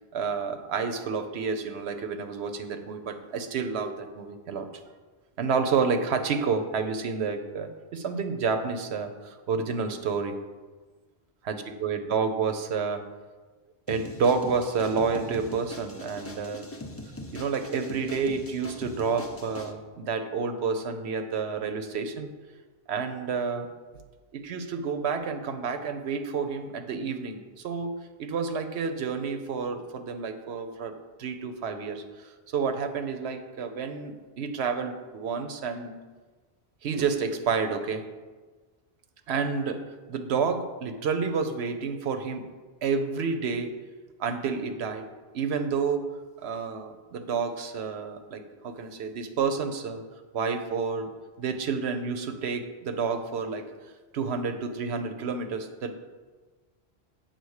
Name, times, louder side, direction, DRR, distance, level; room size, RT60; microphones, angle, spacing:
voice 1, 0.1-4.7 5.4-10.4 11.5-11.6 11.8-13.0 13.9-16.7 17.3-22.3 22.9-23.7 24.3-27.9 28.2-30.9 31.2-36.0 36.8-38.0 39.3-39.8 40.1-42.4 42.8-43.7 44.2-45.1 45.3-46.0 46.4-50.0 50.3-51.1 51.4-53.6 54.1-55.9, right 5 dB, 75° right, 7 dB, 0.9 m, -29 dB
sound 1, 13.9-19.7, left 1 dB, 20° left, 0.4 m, -41 dB
8.3 x 3.9 x 6.4 m, 1.3 s
omnidirectional pair, 1.1 m